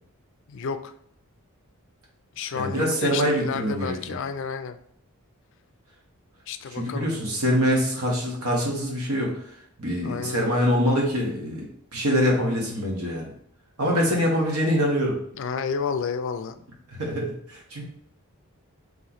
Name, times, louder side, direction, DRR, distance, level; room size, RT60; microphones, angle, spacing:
voice 1, 0.5-0.9 2.4-4.8 6.5-7.1 10.0-10.6 15.3-16.5, left 6 dB, 55° left, 9 dB, 0.3 m, -31 dB
voice 2, 2.5-4.2 6.7-9.3 9.8-13.3 13.8-15.2 17.0-17.8, equal, 75° right, -2 dB, 1.3 m, -24 dB
3.3 x 3.0 x 4.0 m, 0.65 s
head